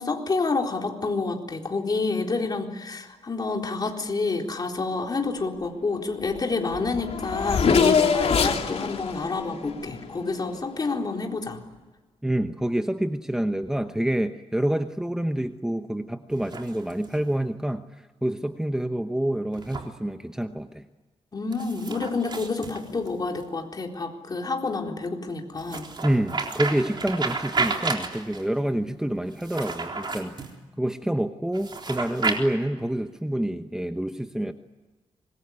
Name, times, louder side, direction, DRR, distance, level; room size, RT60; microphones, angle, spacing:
voice 1, 0.0-11.6 21.3-25.9, left 3 dB, 35° left, 2 dB, 4.0 m, -28 dB
Race car auto racing / Accelerating revving vroom, 6.4-6.5 6.7-10.7, left 6 dB, 70° left, 3.2 m, -25 dB
voice 2, 12.2-17.8 18.2-20.8 26.0-30.4 30.8-34.5, right 1 dB, 5° right, 7 dB, 1.0 m, -27 dB
sound 1, 16.3-17.3 19.5-19.9 21.5-23.5 25.6-28.5 29.3-30.5 31.5-32.4, right 4 dB, 40° right, 3.9 m, -31 dB
25.5 x 22.0 x 9.7 m, 1.2 s
wide cardioid pair, 115°, 11 cm